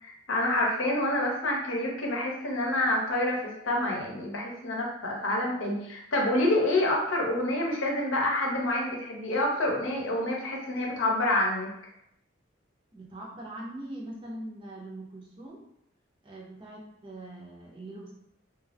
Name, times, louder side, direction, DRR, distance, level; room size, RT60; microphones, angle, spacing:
voice 1, 0.0-11.7, left 1 dB, 75° left, -1 dB, 0.7 m, -27 dB
voice 2, 12.9-15.7 16.2-18.1, right 1 dB, 25° right, -3 dB, 0.6 m, -42 dB
2.5 x 2.3 x 3.2 m, 0.80 s
head